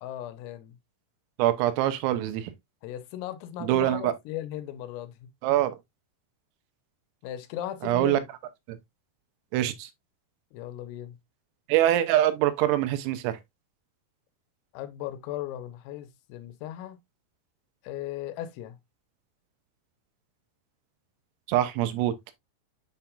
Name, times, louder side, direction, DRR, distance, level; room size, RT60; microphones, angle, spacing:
voice 1, 0.0-0.8 2.8-5.3 7.2-8.3 10.5-11.2 14.7-17.0 17.8-18.8, left 12 dB, 90° left, 3.4 m, -37 dB
voice 2, 1.4-2.5 3.6-4.1 5.4-5.8 7.8-8.2 8.7-8.8 9.5-9.9 11.7-13.4 21.5-22.2, right 13 dB, 90° right, 3.4 m, -24 dB
8.0 x 5.9 x 2.3 m
omnidirectional pair, 5.9 m